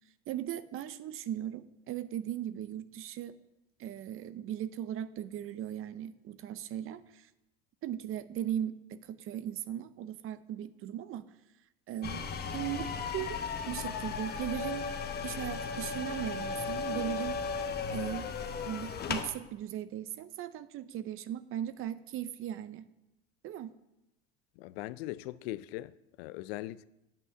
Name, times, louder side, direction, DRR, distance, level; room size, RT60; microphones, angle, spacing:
voice 1, 0.3-3.4 3.8-7.3 7.8-11.3 11.9-13.4 13.7-14.9 15.2-18.3 18.7-22.9 23.4-23.7, right 11 dB, 45° right, 0.6 m, -38 dB
sound 1, 12.0-19.3, left 5 dB, 30° left, 1.0 m, -36 dB
voice 2, 24.6-25.9 26.2-26.8, left 16 dB, 75° left, 0.5 m, -40 dB
9.0 x 5.5 x 7.1 m
supercardioid pair, 95°, 31 cm